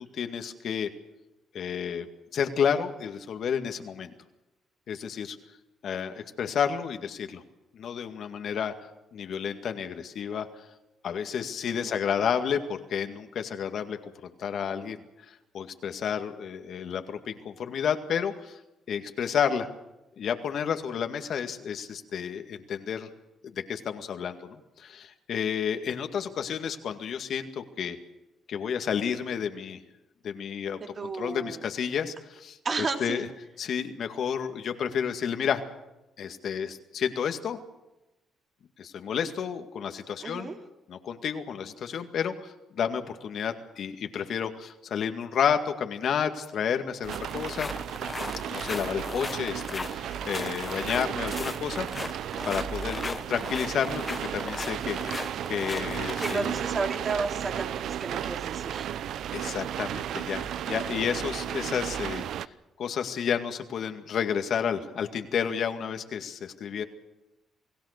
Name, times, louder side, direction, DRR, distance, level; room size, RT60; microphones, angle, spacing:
voice 1, 0.1-0.9 1.5-4.1 4.9-5.4 5.8-7.4 7.7-8.7 9.1-10.5 11.0-15.0 15.3-18.6 18.9-19.7 20.2-23.1 23.7-28.0 28.5-29.8 30.2-30.8 31.2-33.3 33.6-35.6 36.2-37.6 38.8-40.5 40.9-47.7 48.5-52.2 52.4-54.0 54.3-55.0 55.5-56.5 59.3-62.3 62.8-66.8, left 7 dB, 65° left, 7 dB, 2.1 m, -31 dB
voice 2, 11.7-12.0 30.9-31.6 32.6-33.2 40.2-40.6 52.8-53.1 56.2-58.9, right 4 dB, 40° right, 4 dB, 3.0 m, -33 dB
sound 1, 47.0-62.5, right 10 dB, 75° right, 0.7 m, -34 dB
sound 2, 47.1-56.6, left 3 dB, 25° left, 1.2 m, -37 dB
28.5 x 17.5 x 6.7 m, 0.97 s
cardioid pair, 90°, 0 cm